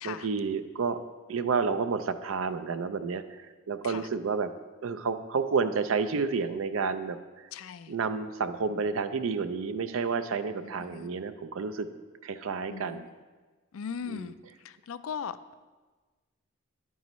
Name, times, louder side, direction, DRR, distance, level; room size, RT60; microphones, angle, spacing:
voice 1, 0.0-1.0 1.3-4.5 4.8-7.2 7.9-11.9 12.2-13.1 14.1-14.3, right 5 dB, 75° right, 0.5 m, -30 dB
voice 2, 7.5-7.9 10.8-11.1 12.7-13.0 13.7-14.3 14.9-15.5, left 7 dB, 85° left, 0.4 m, -38 dB
10.5 x 9.3 x 3.1 m
head